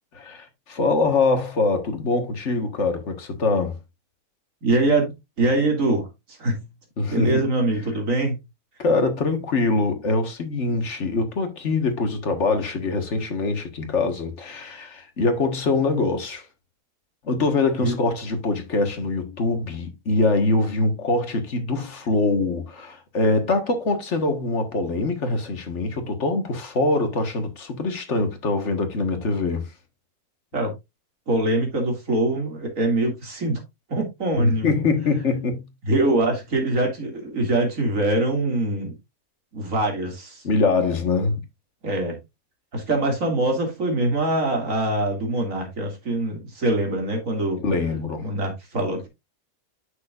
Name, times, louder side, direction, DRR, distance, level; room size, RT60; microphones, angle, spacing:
voice 1, 0.1-3.8 7.0-7.4 8.8-16.4 17.2-29.7 34.4-35.7 40.4-41.4 47.6-48.2, left 3 dB, 50° left, 1.8 m, -23 dB
voice 2, 4.6-6.6 7.1-8.4 17.8-18.0 30.5-30.7 31.3-33.6 33.9-34.8 35.9-38.9 39.5-40.4 41.8-42.2 42.7-47.6 48.2-49.1, right 2 dB, 60° right, 2.9 m, -23 dB
9.4 x 6.6 x 2.5 m
omnidirectional pair, 1.6 m